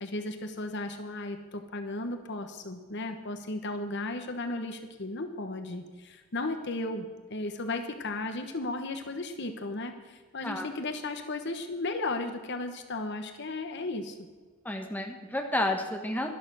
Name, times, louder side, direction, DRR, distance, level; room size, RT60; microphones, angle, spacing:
voice 1, 0.0-14.3, left 2 dB, 55° left, 7 dB, 1.1 m, -35 dB
voice 2, 14.6-16.3, left 1 dB, 10° left, 2 dB, 1.4 m, -31 dB
12.0 x 11.5 x 6.2 m, 1.4 s
head